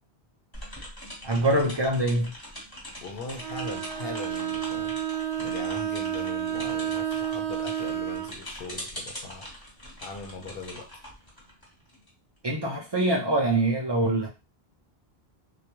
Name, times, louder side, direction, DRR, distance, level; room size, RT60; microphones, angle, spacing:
sound 1, 0.5-12.1, equal, 25° left, 0.9 m, -42 dB
voice 1, 1.2-2.3 12.4-14.3, right 1 dB, 45° right, -2 dB, 0.3 m, -24 dB
voice 2, 3.0-5.0 5.4-9.7 10.0-10.9, left 3 dB, 75° left, 3 dB, 0.8 m, -40 dB
Bowed string instrument, 3.4-8.3, right 10 dB, 85° right, 0.9 m, -30 dB
2.3 x 2.1 x 2.9 m, 0.30 s
omnidirectional pair, 1.0 m